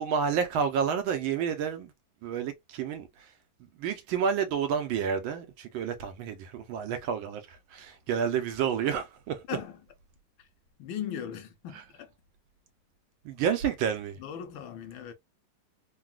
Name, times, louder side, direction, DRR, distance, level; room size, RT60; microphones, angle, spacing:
voice 1, 0.0-1.9 2.2-3.3 3.6-9.4 13.2-14.2, right 7 dB, 75° right, 1.4 m, -30 dB
voice 2, 9.5-9.8 10.4-10.5 10.8-12.1 14.2-15.1, left 9 dB, 75° left, 1.4 m, -38 dB
3.9 x 2.2 x 2.3 m
omnidirectional pair, 2.3 m